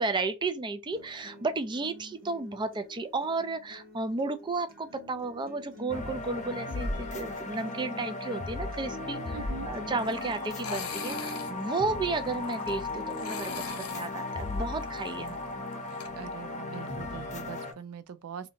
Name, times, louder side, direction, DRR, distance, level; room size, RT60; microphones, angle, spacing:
voice 1, 0.0-9.4 9.7-15.6, right 3 dB, 20° right, 0.4 m, -33 dB
sound 1, 0.9-16.9, equal, 40° right, 1.2 m, -49 dB
sound 2, 5.9-17.7, left 2 dB, 35° left, 0.7 m, -36 dB
voice 2, 9.3-9.7 16.1-18.5, right 6 dB, 90° right, 0.5 m, -42 dB
sound 3, 10.0-16.1, left 6 dB, 80° left, 0.9 m, -42 dB
2.8 x 2.7 x 4.2 m
head